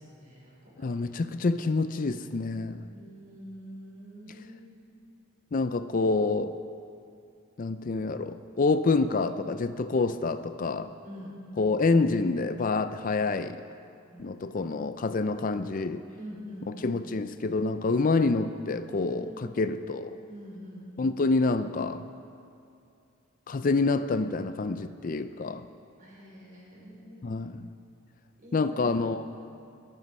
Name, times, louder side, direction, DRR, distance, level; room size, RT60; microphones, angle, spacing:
voice 1, 0.0-1.0 2.9-4.7 11.0-11.3 14.1-14.4 16.2-16.7 19.2-19.6 20.3-20.8 26.0-27.4 28.4-28.9, equal, 40° right, -4 dB, 5.0 m, -45 dB
voice 2, 0.8-2.9 5.5-6.6 7.6-10.9 11.6-13.6 14.2-16.0 16.8-20.1 21.0-22.0 23.5-25.6 27.2-27.7 28.5-29.2, left 3 dB, 40° left, 11 dB, 0.4 m, -27 dB
18.5 x 13.5 x 5.4 m, 2.5 s
head